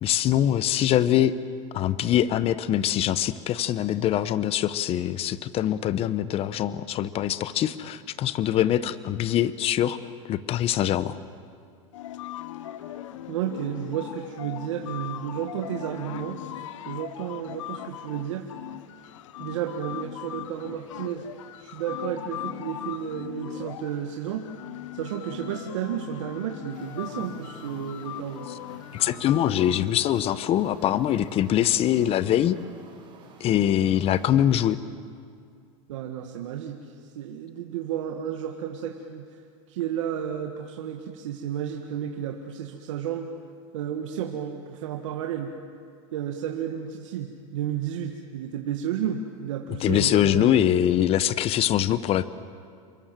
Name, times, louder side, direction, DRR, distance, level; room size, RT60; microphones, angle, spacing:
voice 1, 0.0-1.3 1.7-10.0 10.3-11.1 28.9-32.6 33.4-34.8 49.8-52.3, left 11 dB, 40° left, 15 dB, 1.1 m, -23 dB
sound 1, 11.9-29.8, left 12 dB, 80° left, 1.1 m, -39 dB
voice 2, 13.3-18.4 19.4-21.2 21.6-24.5 24.9-28.5 35.9-39.4 39.7-43.3 43.7-45.5 46.1-50.6, right 9 dB, 80° right, 3 dB, 1.8 m, -32 dB
sound 2, 26.7-34.4, right 4 dB, 30° right, 5.4 m, -49 dB
28.5 x 23.5 x 7.7 m, 2.3 s
supercardioid pair, 120°, 16 cm